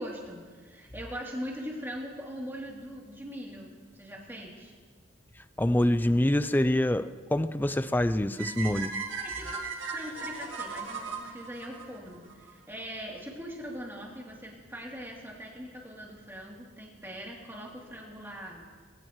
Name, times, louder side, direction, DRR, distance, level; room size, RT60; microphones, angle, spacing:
voice 1, 0.0-4.7 9.2-18.6, equal, 10° right, -3 dB, 3.1 m, -41 dB
voice 2, 5.6-8.9, left 1 dB, 10° left, 13 dB, 0.4 m, -25 dB
sound 1, 8.4-12.5, right 4 dB, 65° right, 2.1 m, -37 dB
22.5 x 17.5 x 3.2 m, 1.5 s
head